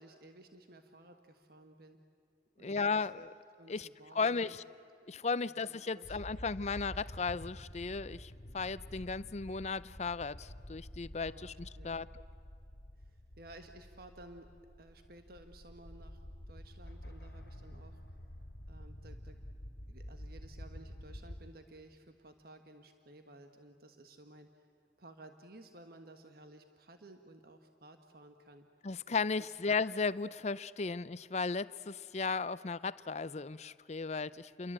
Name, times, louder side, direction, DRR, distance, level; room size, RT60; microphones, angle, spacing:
voice 1, 0.0-2.0 2.6-2.9 3.6-4.6 5.4-6.2 11.2-12.0 13.0-14.5 14.8-16.2 16.5-18.0 18.7-19.4 19.9-24.6 25.0-28.6 29.4-29.5, right 1 dB, 55° right, 6 dB, 1.4 m, -55 dB
voice 2, 2.6-3.3 3.7-3.9 4.1-4.6 5.1-12.1 28.8-34.7, left 4 dB, 40° left, 17 dB, 0.6 m, -35 dB
sound 1, 6.0-21.5, equal, 65° left, 2.0 m, -49 dB
29.5 x 22.5 x 8.8 m, 2.6 s
head